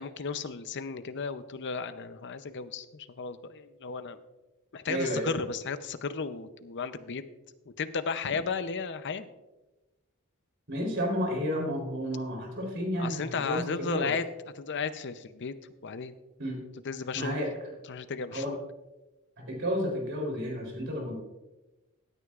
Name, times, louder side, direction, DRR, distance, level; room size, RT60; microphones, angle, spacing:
voice 1, 0.0-4.2 4.7-7.2 7.8-9.3 13.0-14.2 14.5-15.5 15.8-16.2 16.8-17.4 17.9-18.6, left 5 dB, 55° left, 11 dB, 0.6 m, -34 dB
voice 2, 4.9-5.4 8.3-8.4 10.7-14.1 16.4-16.6 17.2-17.7 18.3-18.5 19.5-21.2, equal, 55° right, 0 dB, 3.5 m, -31 dB
17.0 x 9.6 x 2.4 m, 1.1 s
head